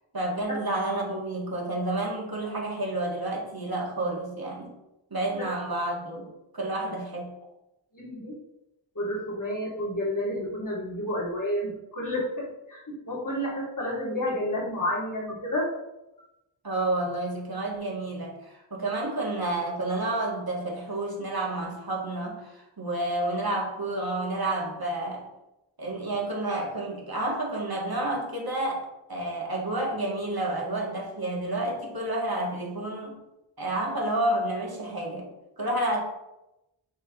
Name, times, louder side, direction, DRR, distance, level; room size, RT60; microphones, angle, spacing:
voice 1, 0.1-4.7 5.1-6.3 6.5-7.3 16.6-25.3 25.8-33.2 33.6-35.3 35.6-36.0, right 1 dB, 45° right, -2 dB, 2.4 m, -30 dB
voice 2, 7.9-8.3 8.9-15.7, left 1 dB, 40° left, -4 dB, 3.0 m, -30 dB
10.5 x 4.3 x 4.0 m, 0.92 s
wide cardioid pair, 65°, 48 cm